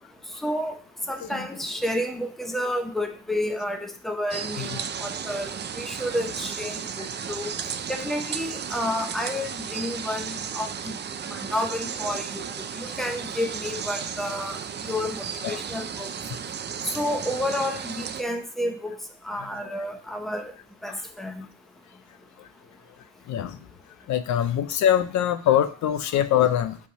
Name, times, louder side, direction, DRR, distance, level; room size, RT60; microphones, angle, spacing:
voice 1, 0.4-0.8 1.1-7.5 7.9-10.9 11.3-16.1 16.8-19.0 19.2-20.5 20.8-21.5, left 1 dB, ahead, 5 dB, 0.8 m, -30 dB
sound 1, 4.3-18.2, right 7 dB, 35° right, 0.5 m, -34 dB
voice 2, 23.3-23.6 24.1-26.8, left 10 dB, 70° left, 10 dB, 0.5 m, -23 dB
5.2 x 3.5 x 5.4 m, 0.43 s
cardioid pair, 90°, 30 cm